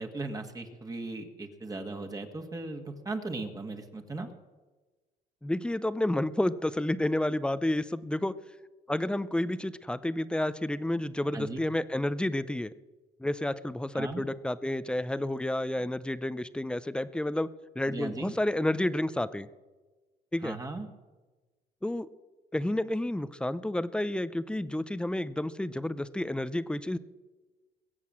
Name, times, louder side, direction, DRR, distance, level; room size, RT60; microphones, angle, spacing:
voice 1, 0.0-4.3 11.3-11.6 13.9-14.2 17.8-18.4 20.4-20.9, right 3 dB, 20° right, 5 dB, 1.7 m, -37 dB
voice 2, 5.4-8.3 8.9-12.7 13.2-17.5 17.8-19.5 20.3-20.6 21.8-22.1 22.5-27.0, left 1 dB, 5° left, 15 dB, 0.6 m, -30 dB
21.5 x 8.1 x 7.5 m, 1.3 s
cardioid pair, 110°, 17 cm